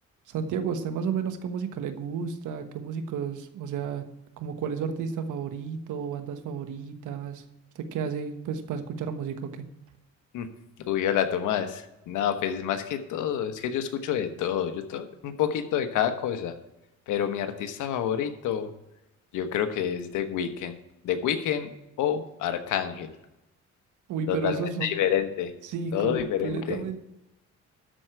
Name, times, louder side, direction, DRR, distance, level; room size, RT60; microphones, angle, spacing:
voice 1, 0.3-4.0 4.4-7.4 7.7-9.7 24.1-25.0 25.6-27.0, right 6 dB, 80° right, 8 dB, 1.3 m, -32 dB
voice 2, 10.9-16.5 17.1-18.7 19.3-20.8 21.0-21.7 22.0-23.1 24.3-25.5 25.9-26.8, left 9 dB, 90° left, 8 dB, 1.2 m, -28 dB
13.0 x 4.6 x 7.7 m, 0.92 s
cardioid pair, 90°, 30 cm